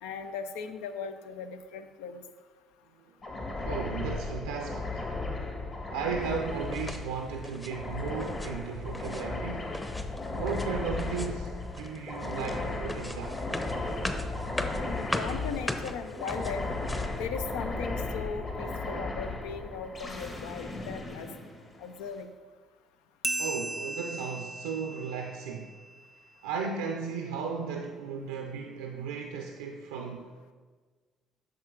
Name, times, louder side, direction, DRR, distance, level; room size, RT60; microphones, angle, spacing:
voice 1, 0.0-2.2 14.8-16.6 17.2-21.3 21.8-22.3, left 6 dB, 80° left, 9 dB, 0.5 m, -38 dB
sound 1, 3.2-22.1, left 2 dB, 40° left, 1.8 m, -36 dB
voice 2, 3.6-5.0 5.9-9.7 10.3-13.4 23.4-25.7 26.4-30.5, right 5 dB, 85° right, 3 dB, 0.5 m, -35 dB
sound 2, 6.7-7.1 7.4-7.7 8.1-8.5 8.8-9.2 9.7-10.7 11.0-11.5 11.7-17.2, left 1 dB, 15° left, 0.8 m, -38 dB
sound 3, 23.2-26.3, right 2 dB, 15° right, 0.4 m, -37 dB
8.6 x 6.3 x 3.8 m, 1.5 s
hypercardioid pair, 60°, 0 cm